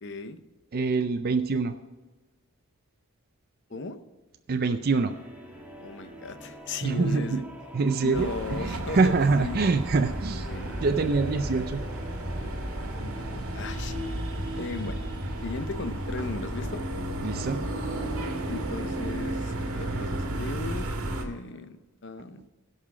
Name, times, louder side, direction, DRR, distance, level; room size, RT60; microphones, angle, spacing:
voice 1, 0.0-0.4 3.7-4.0 5.8-7.4 8.0-9.7 10.5-10.9 12.8-14.0 14.6-15.0 15.4-16.8 18.5-20.9 21.2-21.8 22.0-22.4, left 3 dB, 55° left, 10 dB, 0.8 m, -37 dB
voice 2, 0.7-1.7 4.5-5.1 6.8-7.4 7.7-10.5 10.8-11.8 17.2-17.6, right 4 dB, 45° right, 7 dB, 0.5 m, -25 dB
sound 1, 4.9-13.4, right 1 dB, 10° right, 1.6 m, -44 dB
sound 2, 8.1-21.2, right 1 dB, 85° right, 1.7 m, -33 dB
16.0 x 5.7 x 4.9 m, 1.2 s
head